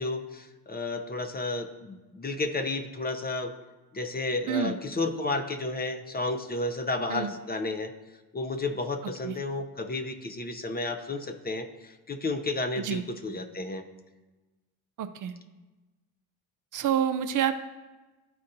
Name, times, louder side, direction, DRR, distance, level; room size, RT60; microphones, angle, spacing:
voice 1, 0.0-3.5 3.9-7.9 8.3-13.8, left 2 dB, 25° left, 6 dB, 0.6 m, -32 dB
voice 2, 4.5-4.8 7.1-7.3 9.2-9.4 12.8-13.0 15.0-15.3 16.7-17.5, right 9 dB, 55° right, 9 dB, 0.5 m, -28 dB
12.0 x 4.1 x 2.6 m, 1.2 s
cardioid pair, 90°, 39 cm